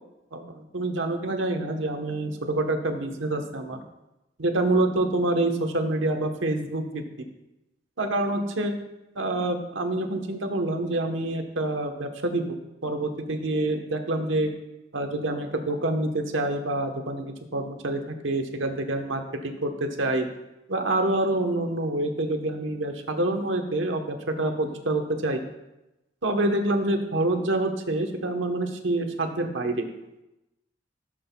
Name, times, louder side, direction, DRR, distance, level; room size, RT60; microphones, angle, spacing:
voice 1, 0.3-3.8 4.4-7.0 8.0-8.7 9.2-12.5 12.8-14.5 14.9-20.3 20.7-25.4 26.2-29.9, right 2 dB, 90° right, 4 dB, 1.1 m, -27 dB
15.5 x 7.6 x 2.3 m, 0.96 s
head